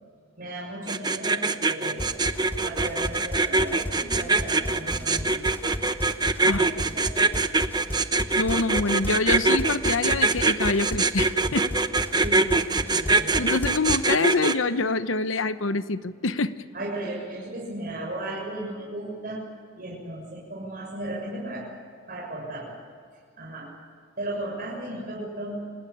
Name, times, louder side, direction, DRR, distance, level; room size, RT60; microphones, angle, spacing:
voice 1, 0.4-2.1 2.6-5.7 6.4-7.4 12.2-13.6 16.7-19.4 19.8-21.7 22.1-22.8 23.4-23.7 24.2-25.6, right 1 dB, 50° right, -4 dB, 6.9 m, -36 dB
sound 1, 0.9-14.5, right 3 dB, 20° right, 0.9 m, -23 dB
sound 2, 2.0-14.1, left 1 dB, 10° left, 0.7 m, -35 dB
voice 2, 8.4-11.7 13.4-16.5, left 3 dB, 90° left, 12 dB, 1.0 m, -25 dB
27.0 x 20.0 x 8.8 m, 2.1 s
head